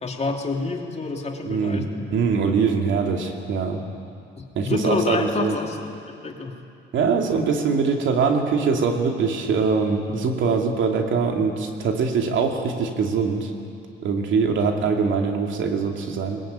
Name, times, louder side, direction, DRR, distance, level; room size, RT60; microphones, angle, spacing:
voice 1, 0.0-2.1 4.4-6.6, left 3 dB, 35° left, 2 dB, 2.8 m, -28 dB
voice 2, 1.5-1.9 2.1-3.8 4.6-5.6 6.9-13.5 14.0-16.4, right 5 dB, 75° right, 3 dB, 2.6 m, -22 dB
21.5 x 20.0 x 8.9 m, 2.5 s
cardioid pair, 90°, 20 cm